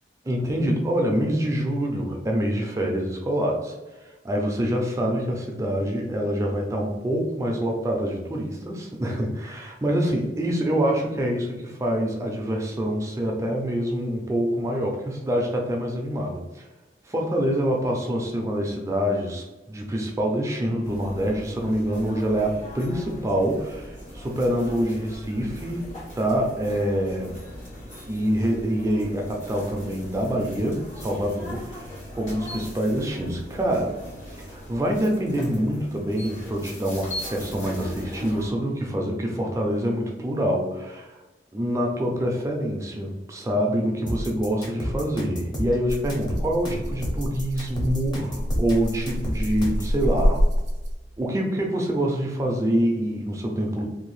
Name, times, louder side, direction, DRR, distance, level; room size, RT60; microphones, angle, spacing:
voice 1, 0.2-3.7 4.0-16.7 17.1-25.9 26.2-27.3 28.1-33.9 34.4-41.2 41.5-50.4 51.2-53.8, equal, 15° right, 0 dB, 0.4 m, -26 dB
sound 1, 20.8-38.5, equal, 40° left, 1.2 m, -40 dB
sound 2, 44.1-50.0, equal, 25° left, 0.7 m, -31 dB
Rattle (instrument), 45.8-51.2, equal, 75° right, 0.5 m, -27 dB
2.6 x 2.2 x 3.1 m, 1.1 s
head